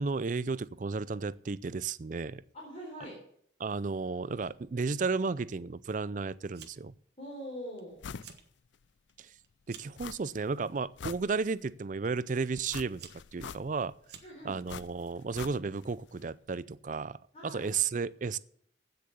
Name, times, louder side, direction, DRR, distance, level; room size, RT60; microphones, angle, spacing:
voice 1, 0.0-2.4 3.6-6.9 9.2-9.3 9.7-13.9 14.4-18.4, right 4 dB, 45° right, 0.4 m, -33 dB
voice 2, 2.5-3.2 7.2-8.0 14.2-14.6 17.3-17.7, equal, 35° left, 3.9 m, -43 dB
Fire, 6.5-7.0 7.3-7.8 8.1-8.5 8.9-10.0 10.8-11.2 12.0-12.1 12.7-14.6, right 8 dB, 60° right, 1.4 m, -52 dB
sound 1, 8.0-8.3 8.7-8.8 10.0-10.5 10.8-11.8 12.7-14.0 14.7-15.9 16.2-16.3, left 6 dB, 70° left, 0.4 m, -44 dB
15.5 x 6.8 x 6.7 m
head